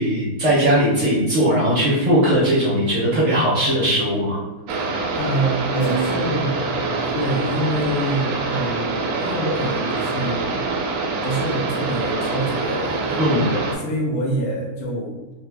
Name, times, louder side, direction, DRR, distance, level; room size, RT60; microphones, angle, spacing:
voice 1, 0.0-4.4 13.2-13.4, equal, 60° right, -7 dB, 1.1 m, -19 dB
voice 2, 4.7-10.6 11.2-15.2, right 1 dB, 85° left, 0 dB, 1.2 m, -26 dB
sound 1, 4.7-13.8, right 3 dB, 90° right, 1.1 m, -25 dB
Guitar, 5.7-9.0, right 2 dB, 60° left, 0.7 m, -33 dB
3.2 x 2.2 x 3.3 m, 1.2 s
omnidirectional pair, 1.5 m